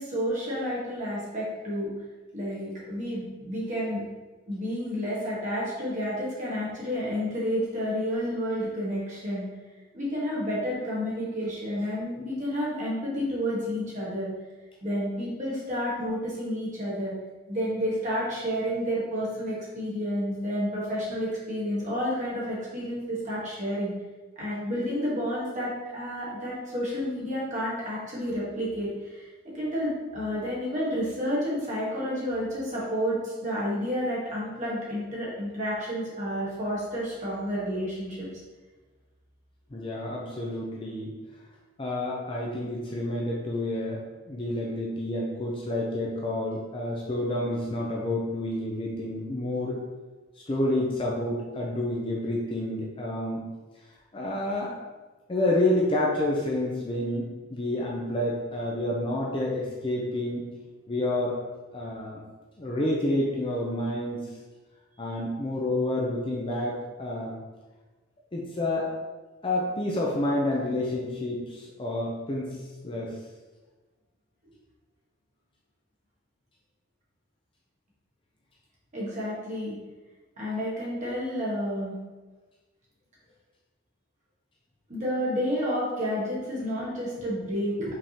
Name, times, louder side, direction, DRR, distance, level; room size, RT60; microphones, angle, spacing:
voice 1, 0.0-1.9 2.3-4.0 4.5-9.5 9.9-14.3 14.8-17.1 17.5-23.9 24.3-38.3 78.9-79.8 80.4-81.9 84.9-87.9, equal, 35° right, -6 dB, 1.4 m, -30 dB
voice 2, 39.7-41.2 41.8-49.8 50.4-53.5 54.1-54.8 55.3-60.5 60.9-61.4 61.7-62.2 62.6-64.3 65.0-67.4 68.3-69.0 69.4-73.2, left 1 dB, 25° left, -3 dB, 0.5 m, -29 dB
5.1 x 3.5 x 2.9 m, 1.2 s
head